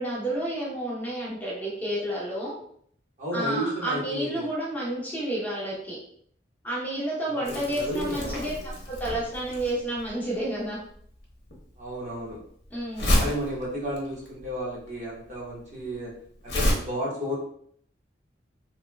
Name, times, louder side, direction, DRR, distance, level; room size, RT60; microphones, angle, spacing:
voice 1, 0.0-2.6 3.3-6.0 6.6-10.8 12.7-13.3, right 1 dB, 10° left, -7 dB, 0.7 m, -30 dB
voice 2, 3.2-4.5 7.3-8.7 11.8-12.4 13.0-16.1 16.4-17.4, equal, 40° right, -6 dB, 1.1 m, -33 dB
Crumpling crinkling, 7.4-16.7, left 1 dB, 60° left, 0.8 m, -30 dB
3.1 x 2.7 x 2.2 m, 0.63 s
head